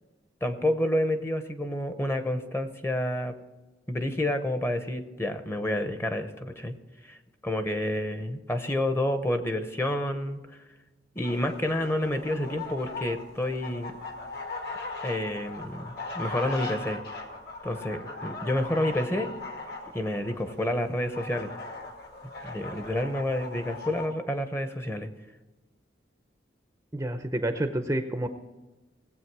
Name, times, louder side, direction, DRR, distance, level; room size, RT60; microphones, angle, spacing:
voice 1, 0.4-3.3 3.9-6.7 7.0-7.2 7.4-10.4 11.1-13.9 15.0-17.0 17.6-19.3 19.9-21.5 22.4-25.1, left 1 dB, 15° left, 8 dB, 0.8 m, -29 dB
sound 1, 11.2-24.1, left 3 dB, 60° left, 2.1 m, -39 dB
voice 2, 26.9-28.3, right 1 dB, 15° right, 7 dB, 0.6 m, -29 dB
18.5 x 8.0 x 4.7 m, 1.1 s
head